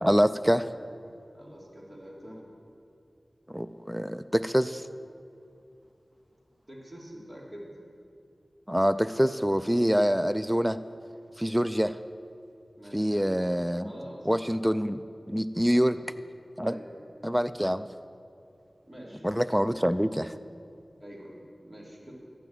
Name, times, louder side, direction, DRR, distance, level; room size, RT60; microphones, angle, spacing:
voice 1, 0.0-0.7 3.5-4.8 8.7-10.8 11.4-12.0 12.9-13.9 14.3-15.0 15.3-16.0 16.6-16.8 17.2-17.9 19.2-20.3, equal, 5° right, 12 dB, 0.3 m, -25 dB
voice 2, 1.3-2.4 6.7-7.7 12.8-13.6 13.8-14.5 15.7-16.1 16.6-17.0 17.3-17.4 18.9-19.2 21.0-22.1, equal, 35° right, -4 dB, 3.2 m, -46 dB
11.5 x 6.1 x 9.2 m, 2.6 s
wide cardioid pair, 55°, 0 cm